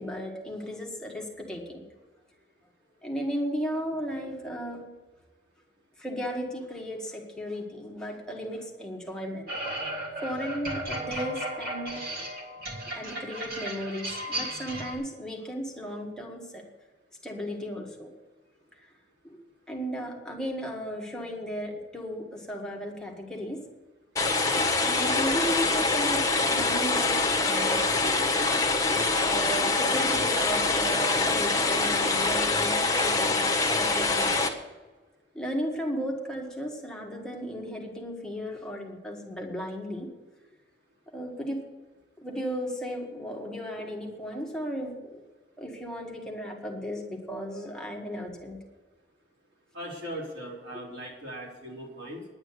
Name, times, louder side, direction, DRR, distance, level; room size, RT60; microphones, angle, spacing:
voice 1, 0.0-1.8 3.0-4.8 6.0-9.5 10.2-12.0 12.4-12.5 12.9-16.6 17.2-18.1 18.8-18.9 19.2-19.4 19.7-23.6 24.8-27.9 28.8-34.3 35.3-40.1 41.1-41.6 42.2-45.2 45.6-48.6 50.7-50.8, equal, 5° left, -1 dB, 1.7 m, -35 dB
sound 1, 9.5-14.9, right 1 dB, 55° right, 3.2 m, -35 dB
sound 2, 24.2-34.5, left 3 dB, 20° left, 1.4 m, -25 dB
voice 2, 49.7-52.3, equal, 80° right, -3 dB, 4.0 m, -39 dB
10.5 x 8.8 x 8.3 m, 1.2 s
head